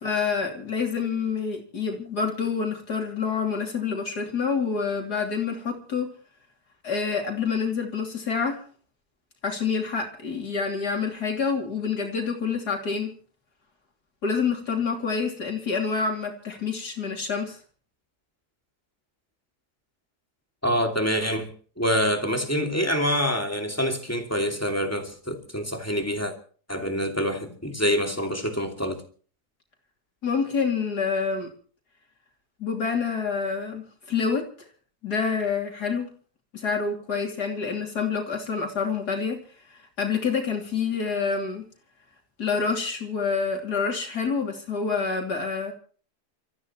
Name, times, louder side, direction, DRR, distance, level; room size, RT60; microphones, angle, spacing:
voice 1, 0.0-6.1 6.8-8.6 9.4-13.2 14.2-17.6 30.2-31.5 32.6-34.7 35.0-36.1 36.5-39.4 39.7-41.6 42.4-45.7, left 5 dB, 85° left, 3.6 m, -27 dB
voice 2, 20.6-21.5 21.8-26.3 26.7-29.0, equal, 10° left, 2.5 m, -26 dB
29.5 x 14.5 x 3.1 m
omnidirectional pair, 1.7 m